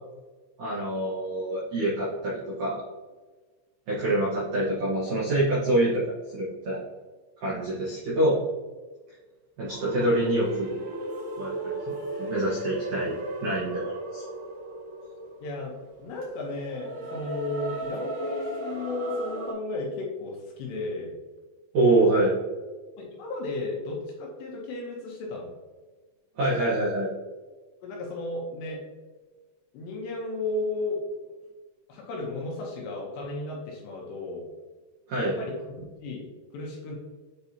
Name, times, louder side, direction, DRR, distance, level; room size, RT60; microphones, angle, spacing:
voice 1, 0.6-2.8 3.9-6.0 6.3-6.8 7.4-8.4 9.6-10.8 11.4-11.8 12.2-13.1 13.4-14.2 21.7-22.3 26.4-27.1 35.1-35.3, right 1 dB, 80° right, -8 dB, 1.7 m, -25 dB
voice 2, 3.9-4.2 11.9-12.0 15.4-15.7 16.0-21.1 23.0-25.5 27.8-28.8 29.7-31.3 31.9-34.5 35.2-37.0, left 2 dB, 70° left, -2 dB, 2.8 m, -34 dB
sound 1, 9.7-19.5, right 1 dB, 55° right, 2.7 m, -35 dB
8.4 x 4.7 x 2.8 m, 1.3 s
omnidirectional pair, 5.8 m